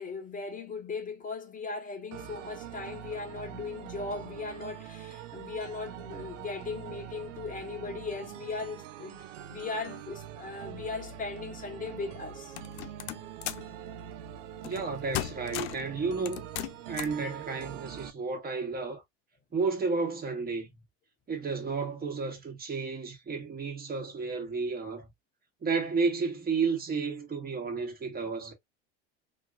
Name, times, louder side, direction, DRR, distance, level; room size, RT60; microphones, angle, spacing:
voice 1, 0.0-12.6, left 4 dB, 20° left, 1.2 m, -38 dB
sound 1, 2.1-18.1, right 10 dB, 90° right, 0.7 m, -44 dB
sound 2, 12.6-13.7 14.6-14.9 15.1-15.9 16.3-17.2, left 15 dB, 65° left, 0.5 m, -36 dB
voice 2, 14.6-16.4 16.9-19.0 19.5-20.8 21.3-25.1 25.6-28.5, right 4 dB, 25° right, 1.4 m, -32 dB
3.0 x 2.8 x 2.4 m
supercardioid pair, 105°, 36 cm